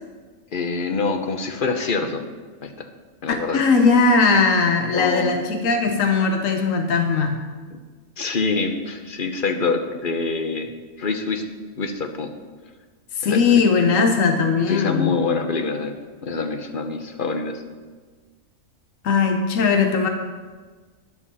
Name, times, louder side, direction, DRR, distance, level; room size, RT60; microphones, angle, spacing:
voice 1, 0.5-2.2 2.6-2.9 3.2-3.6 4.9-5.4 8.2-10.7 11.0-11.4 11.8-12.3 13.2-13.4 14.7-15.9 16.2-17.6, left 4 dB, 45° left, 6 dB, 1.1 m, -25 dB
voice 2, 3.5-7.4 13.1-15.1 19.0-20.1, left 4 dB, 80° left, 5 dB, 1.3 m, -19 dB
12.5 x 9.9 x 4.2 m, 1.4 s
omnidirectional pair, 1.4 m